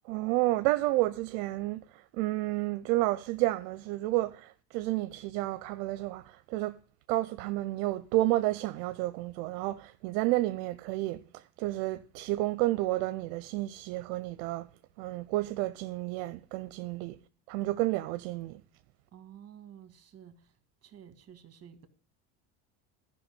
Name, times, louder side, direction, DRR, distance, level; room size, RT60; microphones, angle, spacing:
voice 1, 0.1-6.7 7.1-14.7 15.0-17.2 17.5-18.6, right 17 dB, 75° right, 0.7 m, -31 dB
voice 2, 19.1-20.4 20.8-21.9, right 9 dB, 35° right, 1.7 m, -51 dB
12.0 x 5.8 x 8.1 m
supercardioid pair, 95°, 44 cm